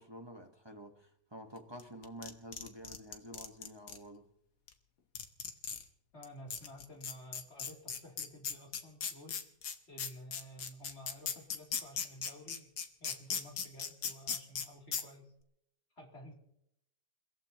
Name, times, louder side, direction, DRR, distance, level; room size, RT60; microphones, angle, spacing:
voice 1, 0.0-4.3, equal, 15° right, 1.1 m, -49 dB
sound 1, 1.8-4.0 4.7-4.8 5.2-5.8 6.2-6.3 6.5-14.7 14.9-15.0, left 7 dB, 70° left, 1.7 m, -37 dB
voice 2, 6.1-9.4 9.9-12.7 13.0-15.3 16.0-16.3, equal, 35° left, 3.4 m, -52 dB
29.0 x 15.0 x 3.0 m
omnidirectional pair, 1.8 m